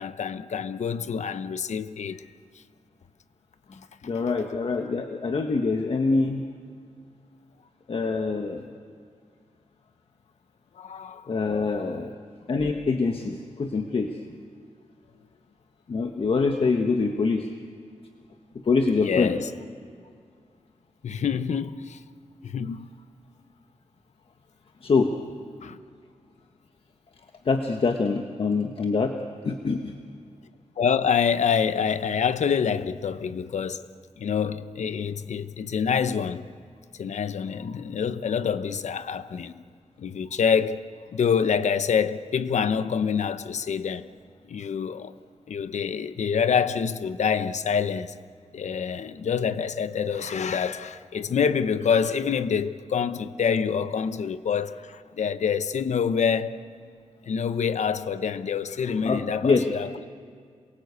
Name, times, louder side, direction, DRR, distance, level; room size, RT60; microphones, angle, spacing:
voice 1, 0.0-2.2 10.8-11.9 19.0-19.5 21.0-22.0 22.4-22.9 25.6-25.8 30.8-33.8 34.2-36.5 37.0-39.6 40.0-40.8 41.1-44.1 44.5-45.1 45.5-48.1 48.5-56.6 57.2-60.0, left 7 dB, 75° left, 0.9 m, -26 dB
voice 2, 3.7-6.4 7.9-8.6 11.3-12.1 12.5-14.1 15.9-17.5 18.6-19.4 24.8-25.1 27.4-29.1 29.4-29.9 59.0-59.7, left 4 dB, 50° left, 1.3 m, -25 dB
27.5 x 22.5 x 8.4 m
wide cardioid pair, 135°, 12 cm